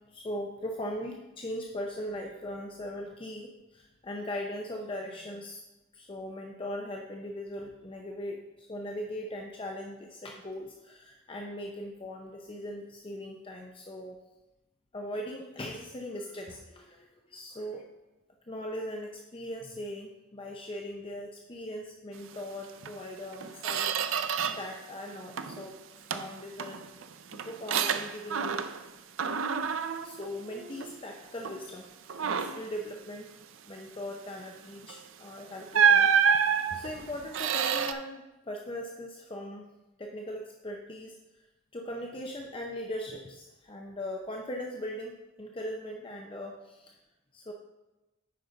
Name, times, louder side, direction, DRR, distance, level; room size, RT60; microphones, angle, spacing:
voice 1, 0.1-5.6 5.9-14.2 14.9-17.9 18.5-24.3 24.6-25.8 26.1-26.8 27.3-28.7 30.0-31.9 32.1-33.3 33.7-36.1 36.4-39.7 40.0-41.5 41.7-46.9 47.3-47.5, left 1 dB, 25° left, 1 dB, 0.6 m, -39 dB
Squeak, 22.8-23.0 23.3-24.8 25.1-25.7 26.1-28.9 29.2-31.0 31.4-31.7 32.1-32.7 34.8-35.0 35.7-37.9, right 7 dB, 75° right, 0.5 m, -28 dB
9.4 x 5.3 x 3.9 m, 1.0 s
head